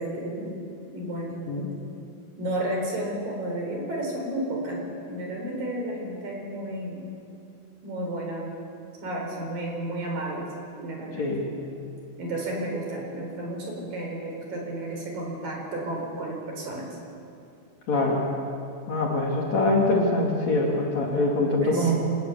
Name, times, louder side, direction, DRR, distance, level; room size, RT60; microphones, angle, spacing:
voice 1, 0.0-1.7 2.4-7.1 7.8-8.5 9.0-10.5 10.8-11.3 12.2-16.9 21.6-21.9, right 1 dB, 55° right, 0 dB, 5.7 m, -32 dB
voice 2, 17.9-18.2 18.9-21.9, left 2 dB, 45° left, -2 dB, 3.3 m, -23 dB
25.5 x 18.5 x 7.0 m, 2.6 s
omnidirectional pair, 4.9 m